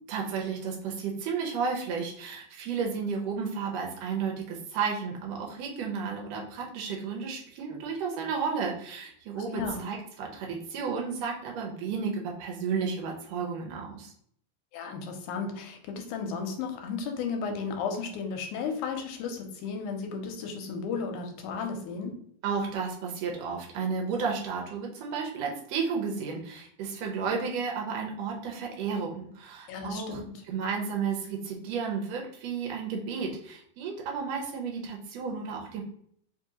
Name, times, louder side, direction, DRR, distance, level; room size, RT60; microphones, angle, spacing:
voice 1, 0.1-14.1 22.4-30.2 30.5-35.8, right 5 dB, 85° right, 0 dB, 1.5 m, -32 dB
voice 2, 9.4-9.8 14.7-22.1 29.7-30.4, left 5 dB, 80° left, 4 dB, 2.0 m, -34 dB
4.8 x 2.6 x 2.8 m, 0.65 s
omnidirectional pair, 3.7 m